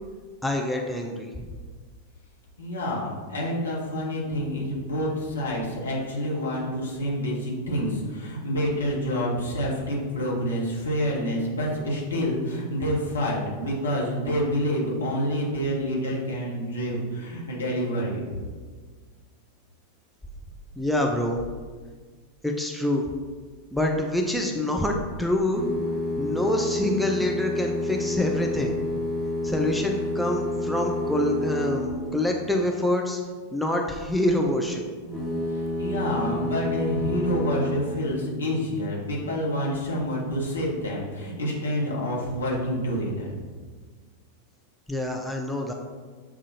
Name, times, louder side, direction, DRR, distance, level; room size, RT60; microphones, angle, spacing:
voice 1, 0.4-1.3 20.8-21.4 22.4-23.1 23.7-25.6 26.2-28.8 29.4-33.2 33.5-34.8 44.9-45.7, left 1 dB, ahead, 0 dB, 0.4 m, -26 dB
voice 2, 2.6-18.2 35.5-43.3, equal, 70° left, -4 dB, 1.1 m, -28 dB
sound 1, 25.5-32.3 35.0-37.8, left 1 dB, 20° right, 0.8 m, -29 dB
7.2 x 2.4 x 2.7 m, 1.5 s
figure-of-eight pair, 90°, 0 cm